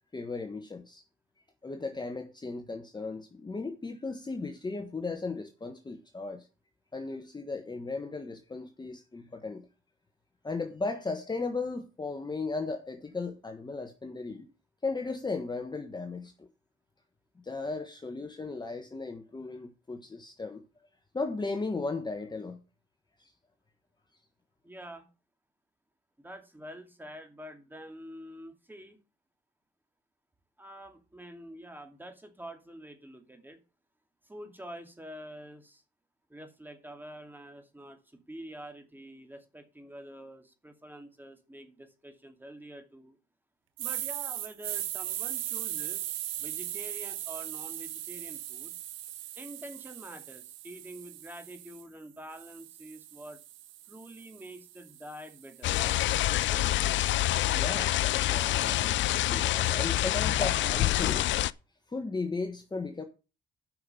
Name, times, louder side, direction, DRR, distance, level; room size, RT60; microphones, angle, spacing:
voice 1, 0.1-1.0 1.6-6.5 6.9-9.7 10.4-14.5 14.8-16.5 17.4-20.6 21.1-22.6 23.2-23.3 57.5-61.3 61.9-63.0, left 3 dB, 20° left, 1.3 m, -36 dB
voice 2, 24.6-25.1 26.2-29.0 30.6-33.6 34.2-35.8 36.3-43.2 43.8-46.1 46.4-48.8 49.4-53.4 53.9-56.0 56.4-57.0, right 1 dB, 10° right, 2.5 m, -47 dB
sound 1, 43.8-51.8 52.3-56.5, right 13 dB, 80° right, 0.8 m, -39 dB
sound 2, 55.6-61.5, left 15 dB, 70° left, 0.5 m, -27 dB
9.1 x 5.7 x 7.0 m
cardioid pair, 90°, 20 cm